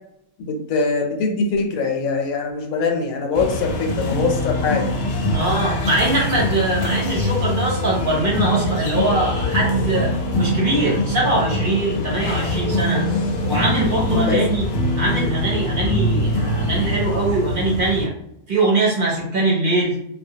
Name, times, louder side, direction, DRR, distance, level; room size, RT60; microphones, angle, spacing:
voice 1, 0.4-4.9 14.2-14.5, left 4 dB, 85° left, 3 dB, 1.0 m, -22 dB
sound 1, 3.3-18.1, left 1 dB, 60° left, 0.7 m, -23 dB
voice 2, 5.3-13.0 13.5-14.7 15.0-18.1 18.5-20.0, right 2 dB, 50° right, -5 dB, 0.7 m, -22 dB
2.3 x 2.2 x 2.7 m, 0.77 s
omnidirectional pair, 1.4 m